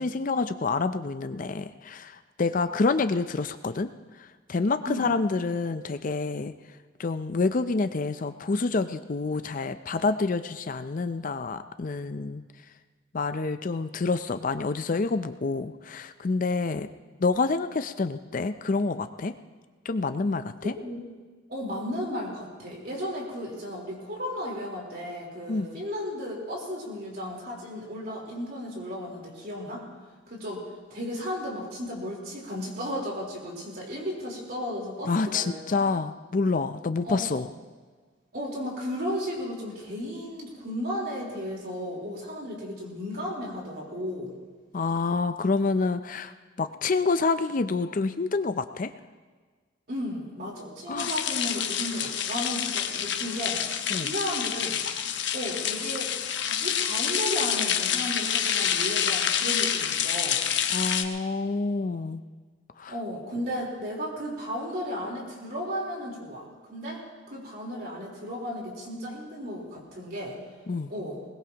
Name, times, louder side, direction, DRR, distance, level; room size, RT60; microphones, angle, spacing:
voice 1, 0.0-3.9 4.5-6.5 7.0-12.4 13.1-16.9 17.2-19.3 19.8-20.7 25.5-25.7 35.1-37.5 44.7-46.3 46.6-48.9 50.9-51.1 53.9-54.1 60.7-62.2 62.8-62.9 70.7-70.9, left 3 dB, 40° left, 10 dB, 0.5 m, -27 dB
voice 2, 20.6-21.1 21.5-29.9 30.3-30.6 30.9-35.8 37.0-37.3 38.3-44.3 49.9-53.6 54.0-54.8 55.3-60.4 62.9-70.4 70.9-71.2, equal, 50° right, -2 dB, 3.9 m, -34 dB
sound 1, 51.0-61.0, left 9 dB, 60° left, 1.0 m, -28 dB
21.0 x 20.5 x 2.9 m, 1.5 s
head